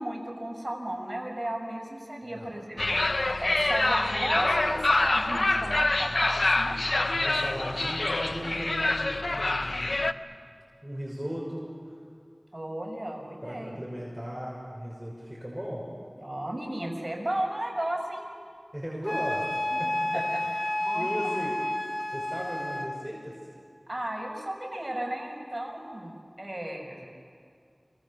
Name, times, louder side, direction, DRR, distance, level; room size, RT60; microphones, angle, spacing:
voice 1, 0.0-6.8 12.5-13.8 16.2-18.3 19.7-19.8 20.1-20.2 20.8-21.3 23.9-27.1, right 1 dB, 40° right, 1 dB, 5.6 m, -34 dB
sound 1, 2.8-10.1, left 2 dB, 80° left, 0.7 m, -26 dB
voice 2, 7.1-10.1 10.8-11.7 13.4-15.9 18.7-19.5 19.8-20.2 20.9-21.5 22.1-23.3 27.0-27.1, equal, 15° right, -5 dB, 6.1 m, -37 dB
Wind instrument woodwind instrument, 19.0-22.9, left 1 dB, 40° left, 3.4 m, -30 dB
28.5 x 24.5 x 7.3 m, 2.2 s
wide cardioid pair, 40°, 0 cm